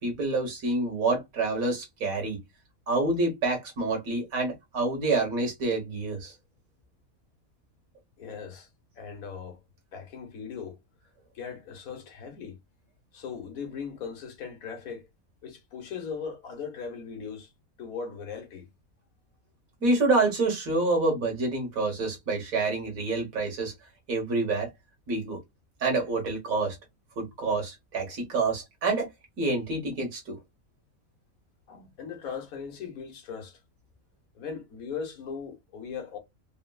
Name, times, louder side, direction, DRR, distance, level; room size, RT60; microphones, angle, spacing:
voice 1, 0.0-2.4 2.9-6.3 19.8-23.7 24.1-24.7 25.1-25.4 25.8-26.8 27.2-29.1 29.4-30.4, right 3 dB, 80° right, 1.8 m, -27 dB
voice 2, 8.2-8.7 9.0-9.6 9.9-10.8 11.3-12.6 13.1-15.1 15.4-17.5 17.8-18.7 31.7-33.6 34.3-36.2, left 6 dB, 85° left, 1.5 m, -38 dB
4.2 x 2.0 x 2.2 m
omnidirectional pair, 1.4 m